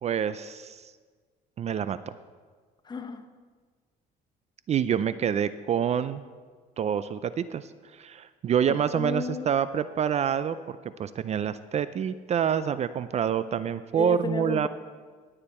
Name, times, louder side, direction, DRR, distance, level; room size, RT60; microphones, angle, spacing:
voice 1, 0.0-0.9 1.6-2.0 4.7-6.2 6.8-14.7, right 8 dB, 40° right, 14 dB, 0.4 m, -27 dB
voice 2, 2.9-3.2 8.7-9.5 13.9-14.7, left 4 dB, 25° left, 8 dB, 0.9 m, -33 dB
17.0 x 8.9 x 4.3 m, 1.6 s
cardioid pair, 110°, 17 cm